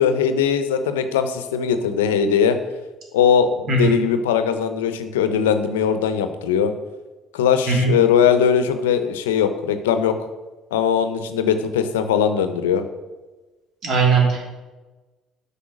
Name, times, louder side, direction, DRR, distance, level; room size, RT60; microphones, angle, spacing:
voice 1, 0.0-2.6 3.1-6.7 7.3-10.2 10.7-12.8, left 7 dB, 85° left, 10 dB, 0.7 m, -20 dB
voice 2, 13.8-14.5, right 4 dB, 60° right, -1 dB, 2.9 m, -18 dB
8.3 x 5.5 x 6.3 m, 1.2 s
hypercardioid pair, 55°, 0 cm